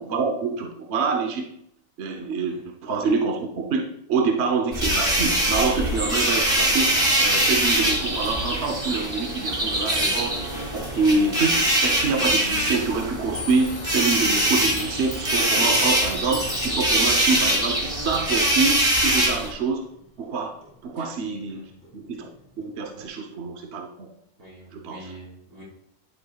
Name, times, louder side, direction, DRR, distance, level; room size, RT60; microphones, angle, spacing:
voice 1, 0.0-1.5 2.0-2.5 2.8-10.4 10.7-19.8 20.2-20.5 20.8-21.6 21.9-22.3 22.6-24.1 24.7-25.1, right 4 dB, 50° right, 2 dB, 1.1 m, -26 dB
sound 1, 4.7-19.5, right 1 dB, 20° right, 2.2 m, -23 dB
Clock, 13.3-20.3 20.6-21.9 22.2-23.1, left 3 dB, 10° left, 1.9 m, -40 dB
voice 2, 24.4-25.6, equal, 75° right, -6 dB, 4.7 m, -44 dB
11.0 x 9.3 x 2.3 m, 0.75 s
omnidirectional pair, 1.6 m